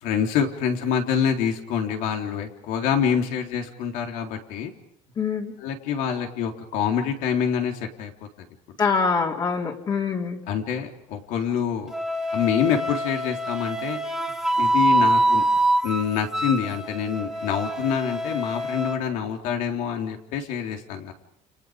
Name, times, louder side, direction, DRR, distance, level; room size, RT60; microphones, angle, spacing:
voice 1, 0.0-4.7 5.6-8.1 10.5-11.9 12.3-14.0 14.6-15.4 15.8-21.1, left 7 dB, 75° left, 3 dB, 3.9 m, -26 dB
voice 2, 5.2-5.5 8.8-10.4, left 5 dB, 30° left, 0 dB, 3.4 m, -24 dB
Wind instrument woodwind instrument, 11.9-19.0, right 1 dB, ahead, 2.9 m, -25 dB
30.0 x 29.0 x 5.2 m, 0.71 s
cardioid pair, 160°, 14 cm